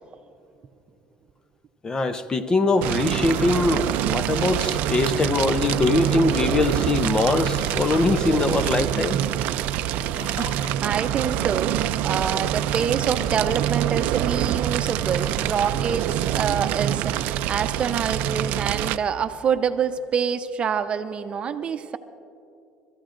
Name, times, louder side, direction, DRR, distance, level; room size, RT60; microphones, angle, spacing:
voice 1, 1.8-9.2, left 3 dB, 25° left, 10 dB, 0.7 m, -22 dB
Fire, 2.8-19.0, right 12 dB, 75° right, 0.5 m, -25 dB
sound 1, 3.3-10.7, left 5 dB, 75° left, 1.2 m, -42 dB
voice 2, 10.8-22.0, right 7 dB, 40° right, 9 dB, 0.7 m, -26 dB
28.5 x 14.0 x 2.6 m, 2.5 s
cardioid pair, 105°, 3 cm